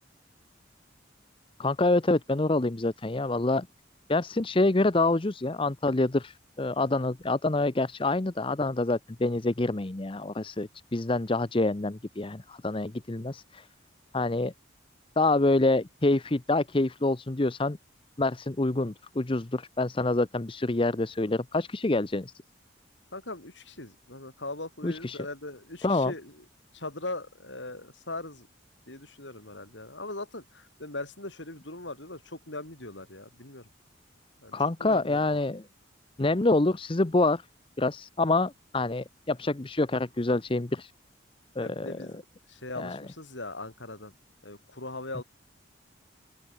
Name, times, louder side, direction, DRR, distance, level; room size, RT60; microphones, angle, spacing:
voice 1, 1.6-3.7 4.1-13.7 14.1-14.5 15.2-17.8 18.2-22.3 24.8-25.2 25.8-26.1 34.5-35.6 36.2-37.4 37.8-40.9 41.6-42.0 42.8-43.0, left 2 dB, 25° left, 0.7 m, -26 dB
voice 2, 23.1-26.4 26.7-28.5 28.9-33.7 34.4-34.5 34.8-35.4 41.6-42.2 42.5-44.1 44.4-45.2, left 2 dB, 70° left, 5.9 m, -40 dB
open air
head